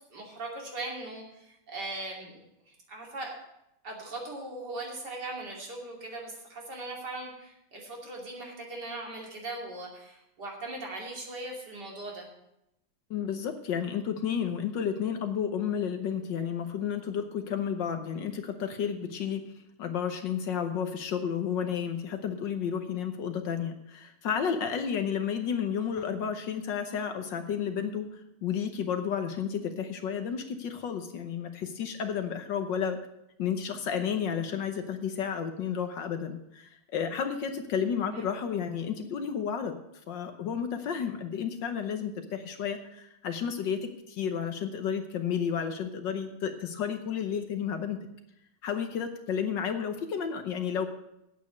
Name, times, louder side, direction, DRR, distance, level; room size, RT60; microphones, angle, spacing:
voice 1, 0.1-2.4 2.7-3.4 3.8-12.3 38.1-38.2, right 2 dB, 55° right, -1 dB, 3.3 m, -39 dB
voice 2, 13.1-19.5 19.8-33.0 33.4-39.8 40.1-48.1 48.6-50.9, left 7 dB, 65° left, 7 dB, 1.5 m, -32 dB
9.0 x 8.5 x 8.2 m, 0.85 s
omnidirectional pair, 2.3 m